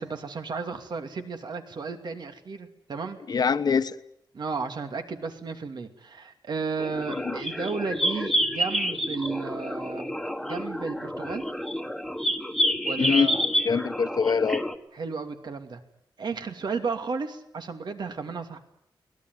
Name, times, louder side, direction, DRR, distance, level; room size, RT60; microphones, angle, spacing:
voice 1, 0.0-3.4 4.3-10.1 10.4-11.4 12.8-13.5 14.9-15.8 16.2-18.6, right 4 dB, 65° right, 2.6 m, -33 dB
voice 2, 3.3-3.9 7.1-7.3 13.0-13.3 13.6-14.6, left 5 dB, 55° left, 1.2 m, -24 dB
sound 1, 6.8-14.7, equal, ahead, 1.6 m, -28 dB
23.0 x 18.5 x 9.5 m
wide cardioid pair, 125°, 8 cm